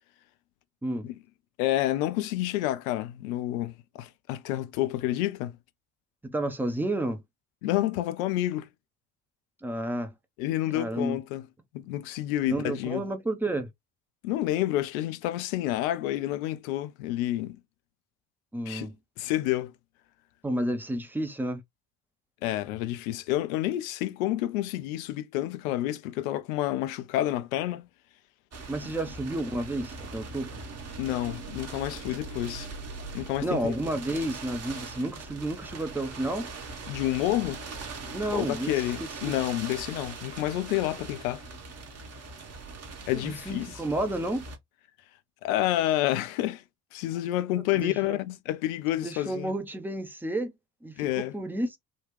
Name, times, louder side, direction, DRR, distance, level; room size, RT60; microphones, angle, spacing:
voice 1, 1.6-5.6 7.6-8.7 10.4-11.5 11.7-13.0 14.2-17.6 18.7-18.9 19.2-19.7 22.4-27.9 31.0-32.7 33.1-33.7 36.9-37.6 38.3-41.4 43.1-43.7 45.4-46.6 46.9-49.5 51.0-51.4, left 14 dB, 65° left, 0.6 m, -29 dB
voice 2, 6.2-7.2 9.6-10.1 10.7-11.2 12.5-13.7 18.5-18.9 20.4-21.6 28.7-30.5 33.4-36.5 38.1-39.3 43.1-44.4 47.7-48.2 49.0-50.5 50.8-51.8, right 1 dB, 5° right, 0.6 m, -31 dB
sound 1, 28.5-44.6, right 3 dB, 35° right, 1.0 m, -41 dB
3.7 x 2.3 x 3.1 m
figure-of-eight pair, 50°, 46 cm